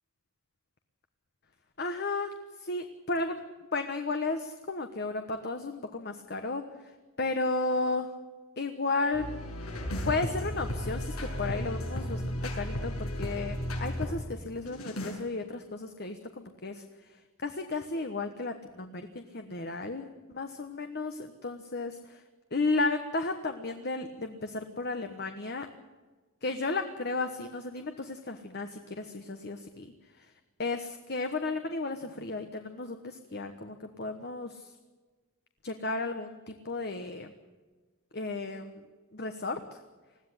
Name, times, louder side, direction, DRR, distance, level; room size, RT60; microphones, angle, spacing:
voice 1, 1.8-2.3 2.6-3.4 3.7-6.6 7.2-8.1 8.6-9.3 10.0-16.8 17.4-22.2 22.5-25.7 26.4-30.3 30.6-34.7 35.6-37.3 38.1-38.8 39.1-39.8, left 3 dB, 50° left, 7 dB, 1.2 m, -34 dB
sound 1, 9.1-14.1 14.6-15.1, left 1 dB, 90° left, 7.0 m, -34 dB
21.0 x 15.5 x 9.9 m, 1.3 s
head